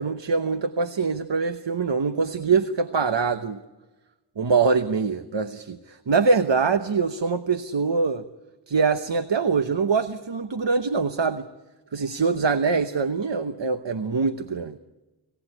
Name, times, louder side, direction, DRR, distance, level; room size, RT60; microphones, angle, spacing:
voice 1, 0.0-3.6 4.4-8.2 8.7-11.5 11.9-14.8, right 4 dB, 80° right, 9 dB, 1.0 m, -24 dB
26.5 x 17.5 x 10.0 m, 1.1 s
wide cardioid pair, 50°, 43 cm